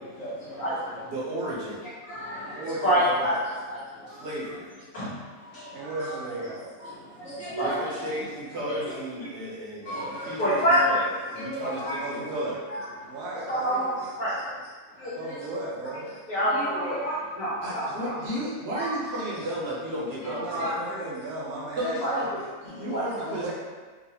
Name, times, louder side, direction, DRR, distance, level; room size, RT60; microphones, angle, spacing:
voice 1, 0.0-1.1 2.1-3.3 3.7-4.3 4.9-5.1 5.5-5.7 6.8-6.9 7.2-8.1 8.6-8.9 9.2-9.3 9.9-10.8 11.5-12.0 12.7-12.8 13.5-13.9 14.2-14.5 15.0-15.2 16.3-18.2 18.7-19.2 20.6-20.8 22.0-22.1 22.8-23.0, equal, 65° left, -10 dB, 1.1 m, -28 dB
voice 2, 1.0-1.9 4.1-4.7 7.5-12.6 17.6-20.7 21.8-22.3 22.6-23.5, right 1 dB, 50° right, -7 dB, 1.0 m, -34 dB
voice 3, 2.5-3.3 5.7-6.6 11.6-12.5 13.0-13.9 15.1-16.1 20.2-22.3 23.2-23.5, right 2 dB, 75° right, -5 dB, 1.0 m, -35 dB
3.9 x 2.3 x 2.8 m, 1.4 s
omnidirectional pair, 1.5 m